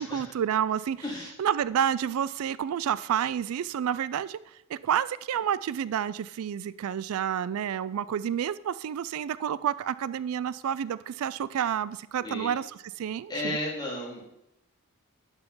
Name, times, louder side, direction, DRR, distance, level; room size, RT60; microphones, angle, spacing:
voice 1, 0.0-1.0 1.4-4.4 4.7-13.6, right 9 dB, 75° right, 17 dB, 0.3 m, -29 dB
voice 2, 1.0-1.3 12.2-12.5 13.3-14.2, left 1 dB, 20° left, -3 dB, 2.7 m, -33 dB
11.5 x 5.6 x 5.5 m, 0.84 s
head